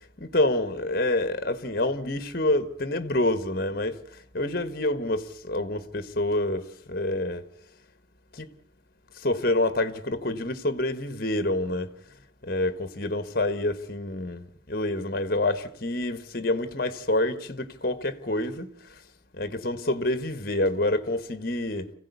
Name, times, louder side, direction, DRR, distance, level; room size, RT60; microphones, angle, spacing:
voice 1, 0.2-7.5 8.3-8.5 9.2-11.9 12.4-19.0 19.3-21.9, left 1 dB, 50° left, 1.4 m, -27 dB
26.0 x 16.0 x 8.2 m
head